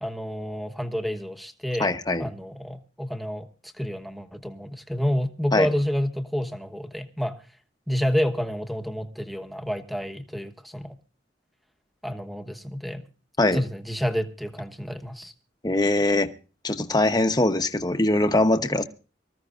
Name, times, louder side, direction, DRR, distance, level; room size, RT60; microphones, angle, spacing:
voice 1, 0.0-1.9 2.2-7.4 7.9-10.9 12.0-13.0 13.5-15.3, equal, ahead, 5 dB, 1.1 m, -29 dB
voice 2, 1.8-2.3 5.5-5.7 13.4-13.6 15.6-16.3 16.6-18.8, left 2 dB, 20° left, 8 dB, 1.0 m, -22 dB
25.0 x 14.5 x 2.5 m, 0.35 s
head